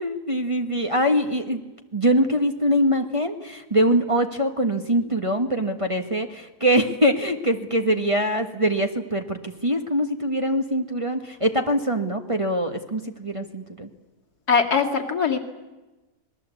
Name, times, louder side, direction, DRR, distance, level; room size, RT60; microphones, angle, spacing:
voice 1, 0.0-1.6 1.9-13.9, equal, 20° right, 5 dB, 1.4 m, -23 dB
voice 2, 14.5-15.4, left 5 dB, 70° left, 3 dB, 2.7 m, -21 dB
26.0 x 21.0 x 8.3 m, 1.1 s
omnidirectional pair, 1.7 m